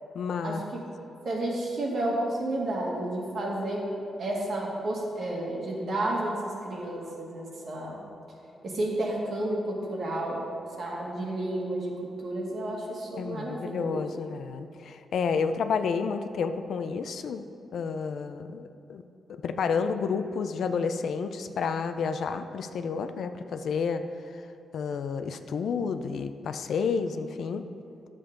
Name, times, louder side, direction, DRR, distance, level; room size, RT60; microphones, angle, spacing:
voice 1, 0.1-0.6 13.2-17.5 17.7-19.0 19.3-24.0 24.7-27.6, left 5 dB, 70° left, 9 dB, 0.4 m, -30 dB
voice 2, 1.2-3.9 4.2-8.0 8.6-10.4 10.8-12.0 12.2-14.2, right 1 dB, 55° right, -3 dB, 1.9 m, -31 dB
10.0 x 7.4 x 3.8 m, 2.9 s
cardioid pair, 125°, 0 cm